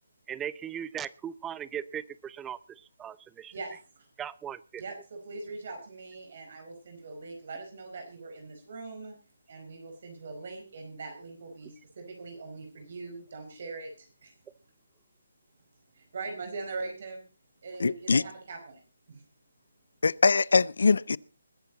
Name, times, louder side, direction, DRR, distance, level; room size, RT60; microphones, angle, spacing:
voice 1, 0.3-3.5 4.2-4.8, right 9 dB, 10° right, 0.6 m, -38 dB
voice 2, 3.5-4.1 4.8-9.2 9.5-14.3 15.9-17.2 17.6-18.8 19.1-19.2, right 3 dB, 55° right, 4.6 m, -41 dB
voice 3, 17.8-18.2 20.0-21.2, left 4 dB, 70° left, 0.6 m, -23 dB
20.5 x 10.5 x 4.1 m
figure-of-eight pair, 150°, 0 cm